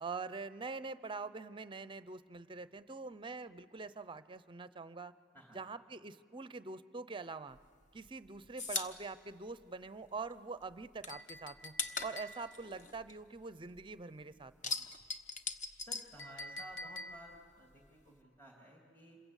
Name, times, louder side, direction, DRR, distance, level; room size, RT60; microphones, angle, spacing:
voice 1, 0.0-5.1 5.5-7.6 7.9-14.9, right 4 dB, 25° right, 14 dB, 0.6 m, -44 dB
sound 1, 7.5-10.3 10.6-13.9 14.2-16.8 17.1-18.2, left 4 dB, 40° left, 1.1 m, -41 dB
Chink clink, 11.1-12.7 16.2-17.5, left 1 dB, 80° left, 1.1 m, -48 dB
voice 2, 15.8-19.2, right 1 dB, 10° left, -1 dB, 3.0 m, -55 dB
27.5 x 22.5 x 8.2 m, 2.1 s
head